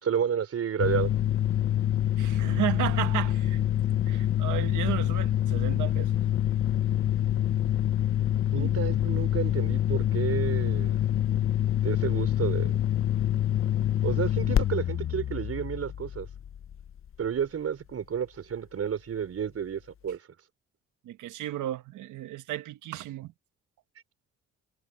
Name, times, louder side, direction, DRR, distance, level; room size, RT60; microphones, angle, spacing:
voice 1, 0.0-1.1 8.5-11.0 11.8-12.7 14.0-16.3 17.2-20.2, right 8 dB, 50° right, 4.2 m, -31 dB
sound 1, 0.8-17.1, left 11 dB, 45° left, 0.7 m, -26 dB
voice 2, 2.2-3.6 4.1-6.1 8.5-8.8 21.1-23.3, right 13 dB, 85° right, 1.7 m, -33 dB
cardioid pair, 90°, 30 cm